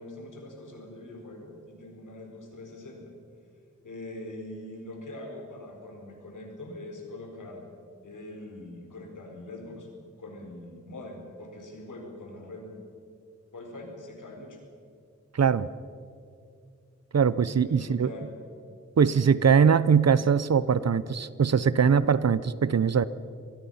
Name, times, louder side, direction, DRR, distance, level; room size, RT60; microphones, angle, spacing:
voice 1, 0.0-3.1 3.8-7.6 8.0-9.9 10.2-12.7 13.5-14.6 17.6-18.3, left 1 dB, 80° left, 2 dB, 4.6 m, -43 dB
voice 2, 15.3-15.7 17.1-18.1 19.0-23.0, right 6 dB, 55° right, 17 dB, 0.8 m, -22 dB
26.0 x 20.0 x 5.7 m, 2.4 s
wide cardioid pair, 65°, 30 cm